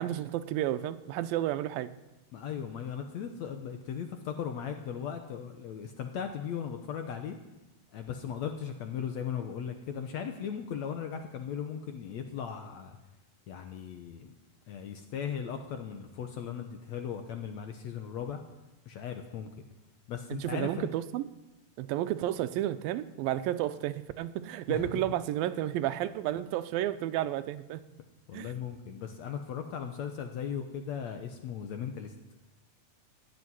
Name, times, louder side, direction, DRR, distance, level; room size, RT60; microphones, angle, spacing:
voice 1, 0.0-1.9 20.3-21.3 21.8-27.8 28.3-28.5, right 13 dB, 85° right, 12 dB, 2.4 m, -32 dB
voice 2, 2.3-7.4 7.9-13.0 13.5-14.3 14.7-18.4 18.9-19.5 20.1-20.9 24.7-24.9 28.3-32.1, left 8 dB, 70° left, 6 dB, 1.8 m, -37 dB
16.5 x 7.7 x 9.8 m, 1.0 s
omnidirectional pair, 4.1 m